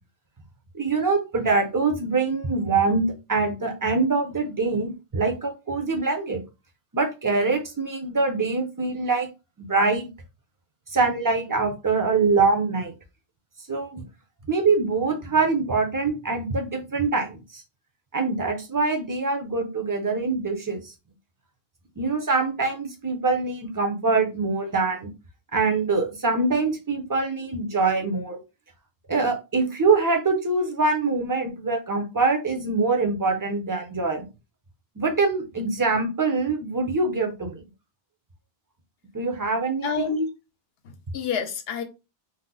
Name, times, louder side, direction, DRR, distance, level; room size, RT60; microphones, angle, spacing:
voice 1, 0.7-3.0 3.3-6.4 6.9-9.3 9.6-10.1 10.9-12.9 13.7-14.0 14.5-17.6 18.1-20.9 22.0-25.1 25.5-28.4 29.1-34.2 35.0-37.6 39.1-40.1, right 3 dB, 25° right, 0.5 m, -24 dB
voice 2, 39.8-40.3 40.8-41.8, left 5 dB, 70° left, 0.8 m, -28 dB
2.8 x 2.0 x 3.8 m
omnidirectional pair, 1.1 m